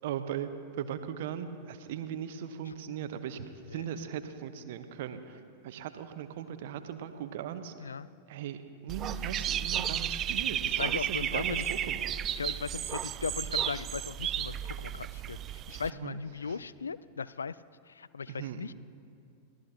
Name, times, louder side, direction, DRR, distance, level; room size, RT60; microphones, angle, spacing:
voice 1, 0.0-0.5 0.8-3.4 3.7-7.7 8.3-8.6 8.8-12.2 15.8-16.6 18.3-18.7, right 9 dB, 55° right, 9 dB, 1.0 m, -38 dB
Dog / Bird, 8.9-15.9, right 10 dB, 30° right, 0.4 m, -33 dB
voice 2, 10.6-11.6 12.4-15.4 15.7-17.5 18.0-18.7, left 5 dB, 75° left, 17 dB, 0.3 m, -37 dB
22.5 x 15.5 x 2.8 m, 2.4 s
figure-of-eight pair, 90°, 0 cm